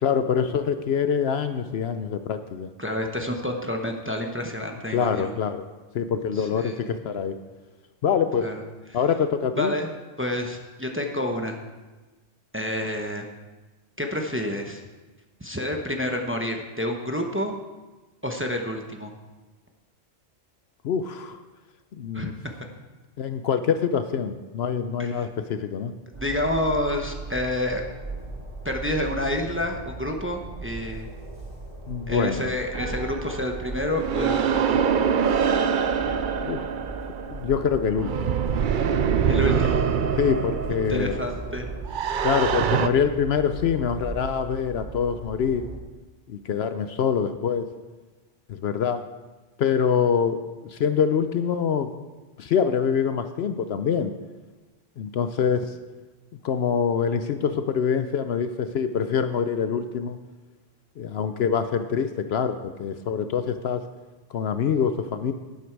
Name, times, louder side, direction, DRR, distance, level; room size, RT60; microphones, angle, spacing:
voice 1, 0.0-2.7 4.9-5.7 5.9-7.4 8.0-8.5 8.9-9.7 20.8-21.4 21.9-22.3 23.2-25.9 31.9-32.4 36.4-36.6 37.3-38.4 40.2-41.1 42.2-45.7 46.3-47.7 48.5-49.0 49.6-51.9 52.4-54.1 55.0-55.7 56.4-60.2 61.0-63.8 64.3-65.3, left 7 dB, 65° left, 9 dB, 0.8 m, -25 dB
voice 2, 2.8-5.3 6.4-6.8 8.4-8.6 9.6-9.9 10.2-11.6 12.5-13.2 14.0-14.8 15.4-17.6 18.2-19.1 22.1-22.5 25.0-25.3 26.1-27.8 28.6-31.1 32.1-34.8 39.3-39.8 40.9-41.7, left 1 dB, 10° right, 2 dB, 0.9 m, -29 dB
Train, 26.1-45.7, right 2 dB, 30° right, 4.5 m, -38 dB
sound 1, 32.7-42.9, right 7 dB, 55° right, 0.6 m, -25 dB
11.5 x 9.5 x 4.6 m, 1.2 s
omnidirectional pair, 1.2 m